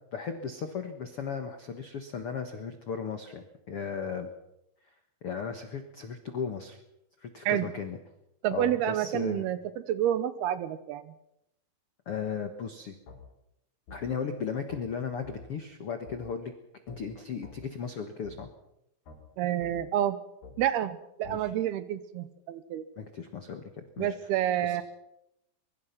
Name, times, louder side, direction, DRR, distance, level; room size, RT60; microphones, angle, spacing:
voice 1, 0.1-4.3 5.2-6.8 7.2-8.0 8.5-9.4 12.0-13.0 13.9-16.5 16.9-18.5 21.3-21.5 23.0-24.1 24.6-24.8, left 6 dB, 70° left, 7 dB, 1.3 m, -36 dB
voice 2, 8.4-9.6 9.9-11.1 19.4-20.2 20.6-22.8 24.0-24.8, right 11 dB, 75° right, 14 dB, 2.7 m, -29 dB
sound 1, 13.1-13.2 13.9-14.0 14.7-14.8 15.2-15.4 16.1-16.2 16.9-17.0 17.4-17.6 18.2-18.4 19.1-19.2 19.6-19.8 20.4-20.6 21.2-21.4, left 4 dB, 50° left, 6.1 m, -47 dB
23.0 x 23.0 x 5.9 m, 0.84 s
omnidirectional pair, 5.1 m